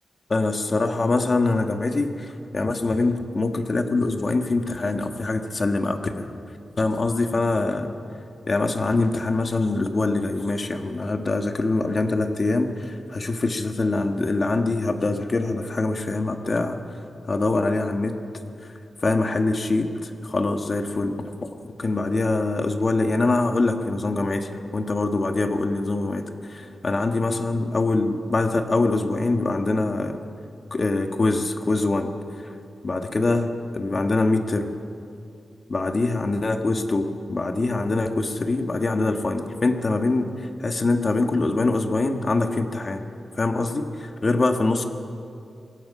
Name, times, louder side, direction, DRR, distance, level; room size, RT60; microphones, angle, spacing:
voice 1, 0.3-6.3 6.8-7.9 8.5-16.8 17.3-18.2 19.0-21.3 21.6-26.2 26.5-30.2 30.7-32.1 32.8-34.7 35.7-43.0 43.4-44.8, left 2 dB, 35° left, 5 dB, 1.7 m, -24 dB
25.5 x 21.5 x 5.6 m, 2.6 s
wide cardioid pair, 140°, 0 cm